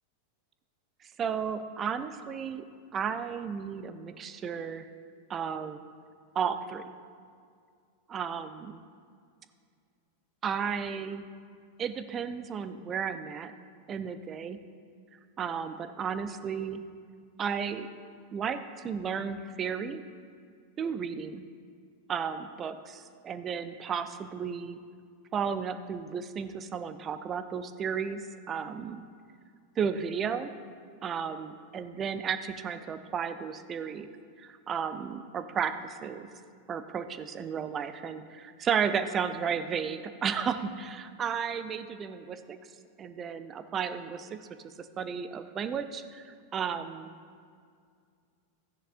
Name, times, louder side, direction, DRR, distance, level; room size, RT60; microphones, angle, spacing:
voice 1, 1.2-2.6 2.9-4.9 5.3-5.8 6.3-6.8 8.1-8.8 10.4-11.3 11.8-13.5 13.9-14.6 15.4-16.8 17.4-17.9 18.3-20.0 20.8-21.4 22.1-24.8 25.3-29.0 29.8-30.5 31.0-34.1 34.4-36.3 36.7-42.6 43.0-47.1, right 7 dB, 25° right, 11 dB, 0.5 m, -33 dB
13.5 x 9.9 x 2.5 m, 2.2 s
figure-of-eight pair, 90°, 0 cm